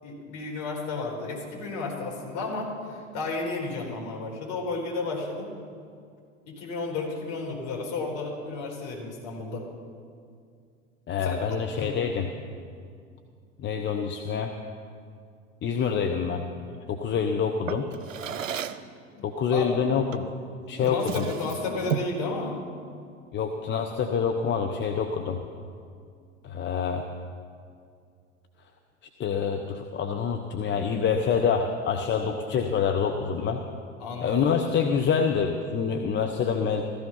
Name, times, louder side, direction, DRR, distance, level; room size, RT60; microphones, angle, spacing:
voice 1, 0.0-5.5 6.5-9.6 11.2-11.3 11.8-12.0 19.1-19.2 19.5-19.7 20.9-22.6 34.0-34.5, left 3 dB, 45° left, -1 dB, 4.8 m, -32 dB
voice 2, 11.1-12.3 13.6-14.5 15.6-16.5 16.9-17.8 19.2-20.3 20.7-21.2 23.3-25.4 26.4-27.0 29.2-33.6 34.2-36.8, left 6 dB, 30° left, 4 dB, 1.0 m, -26 dB
Drawer open or close, 17.7-18.9 20.1-20.3 20.8-22.2, right 8 dB, 80° right, 0.7 m, -33 dB
15.0 x 15.0 x 5.8 m, 2.3 s
figure-of-eight pair, 80°, 39 cm